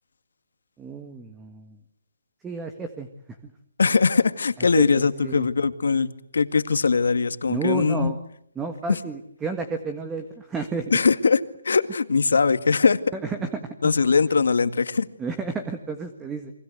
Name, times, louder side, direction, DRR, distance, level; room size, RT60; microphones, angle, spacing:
voice 1, 0.8-1.8 2.4-3.1 3.4-3.5 4.7-5.5 7.5-8.2 8.5-10.9 13.1-13.6 15.2-16.5, right 4 dB, 10° right, 8 dB, 1.6 m, -31 dB
voice 2, 3.8-8.1 8.9-9.0 10.9-11.4 11.6-13.0 13.8-15.1, left 5 dB, 75° left, 11 dB, 2.1 m, -21 dB
30.0 x 24.5 x 8.1 m, 0.70 s
hypercardioid pair, 160°, 0 cm